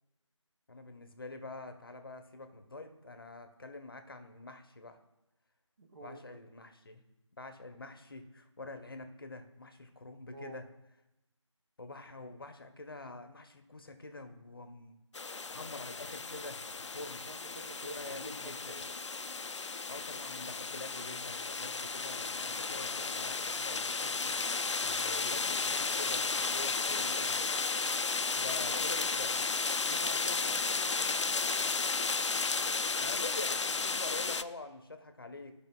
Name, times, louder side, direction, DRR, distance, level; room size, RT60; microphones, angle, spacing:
voice 1, 0.7-5.0 6.0-7.0 7.4-10.6 11.8-17.3 17.8-18.8 19.9-27.4 28.4-29.5 33.0-35.5, left 2 dB, 45° left, 7 dB, 0.8 m, -46 dB
voice 2, 5.8-6.4 10.3-10.6 17.0-18.9 29.8-31.9, right 1 dB, 45° right, 5 dB, 0.7 m, -50 dB
sound 1, 15.1-34.4, left 4 dB, 65° left, 0.4 m, -33 dB
13.0 x 5.1 x 2.2 m, 0.95 s
figure-of-eight pair, 165°, 16 cm